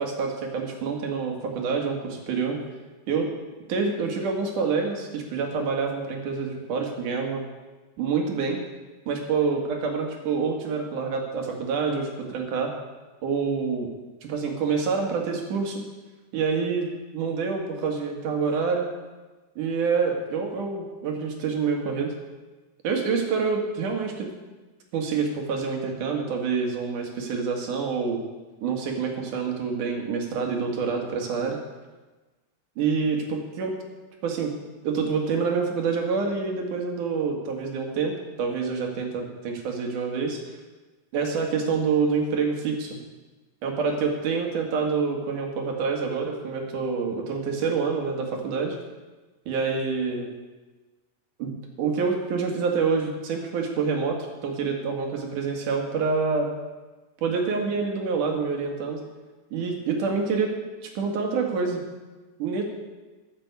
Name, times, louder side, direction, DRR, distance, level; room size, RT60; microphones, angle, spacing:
voice 1, 0.0-2.6 3.1-3.3 3.7-7.4 8.0-8.6 9.1-12.7 13.2-13.9 14.2-15.8 16.3-18.9 19.6-22.1 22.8-24.3 24.9-28.2 28.6-31.6 32.8-33.7 34.2-34.5 34.8-38.1 38.4-40.4 41.1-43.0 43.6-48.8 49.5-50.3 51.4-54.2 54.4-56.5 57.2-59.0 59.5-60.5 60.8-61.8 62.4-62.6, right 5 dB, 75° right, 2 dB, 3.4 m, -27 dB
13.5 x 7.5 x 8.2 m, 1.2 s
omnidirectional pair, 3.6 m